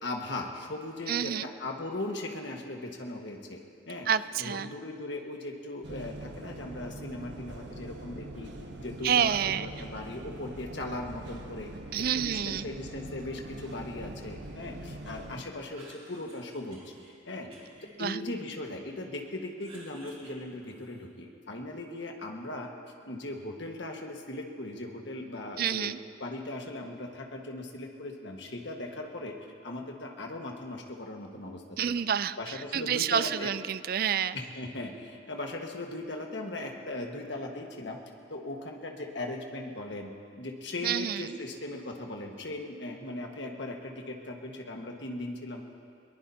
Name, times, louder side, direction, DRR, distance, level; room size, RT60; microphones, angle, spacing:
voice 1, 0.0-3.6 3.9-4.1 4.4-8.5 8.8-11.7 11.9-16.8 17.2-17.5 18.0-22.7 23.1-25.9 26.2-29.3 29.6-32.0 32.4-33.5 34.3-38.0 38.3-40.1 40.4-45.6, left 2 dB, 70° left, 1 dB, 1.5 m, -38 dB
voice 2, 1.1-1.5 4.1-4.7 9.0-9.7 11.9-12.7 18.0-18.2 25.6-26.0 31.8-34.4 40.8-41.4, right 8 dB, 50° right, 15 dB, 0.4 m, -29 dB
sound 1, 5.8-15.4, right 1 dB, 70° right, 1.1 m, -43 dB
Cough, 15.5-17.1 17.5-19.0 19.3-21.2, right 2 dB, 35° right, 3.5 m, -54 dB
22.0 x 20.0 x 2.8 m, 2.3 s
head